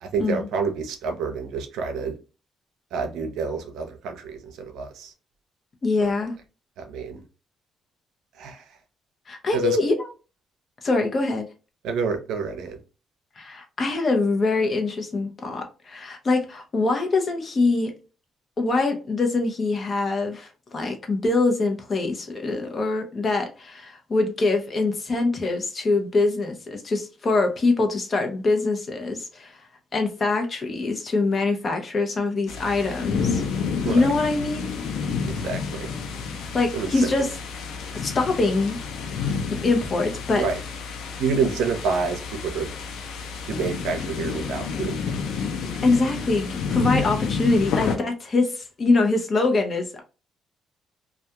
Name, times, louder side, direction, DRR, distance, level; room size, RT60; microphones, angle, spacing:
voice 1, 0.0-2.2 2.9-5.1 6.8-7.2 8.4-8.6 9.5-9.8 11.8-12.8 33.8-34.1 35.3-35.9 36.7-37.1 40.4-40.6 41.2-42.7 43.5-45.1, right 5 dB, 85° right, 0.5 m, -28 dB
voice 2, 5.8-6.4 9.3-10.1 10.8-11.5 13.4-17.9 18.6-29.6 29.9-33.4 33.9-34.7 36.5-37.3 37.9-38.8 39.6-40.4 41.4-41.5 45.8-50.0, left 3 dB, 40° left, 0.7 m, -24 dB
sound 1, 32.5-48.0, left 5 dB, 85° left, 0.5 m, -30 dB
2.3 x 2.2 x 2.8 m
cardioid pair, 90°, 0 cm